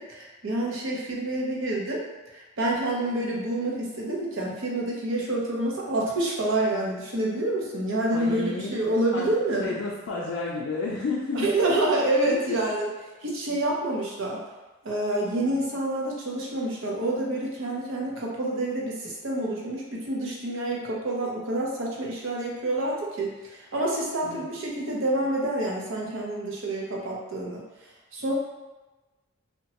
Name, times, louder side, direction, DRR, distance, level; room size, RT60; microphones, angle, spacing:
voice 1, 0.0-2.0 2.3-9.7 11.3-12.9 13.2-14.4 14.8-27.6 28.1-28.3, right 1 dB, 65° right, -2 dB, 0.6 m, -28 dB
voice 2, 8.1-8.7 9.1-9.3 9.6-11.6 12.3-12.6 24.2-24.5, left 3 dB, 70° left, -4 dB, 0.4 m, -31 dB
2.9 x 2.1 x 2.8 m, 1.1 s
head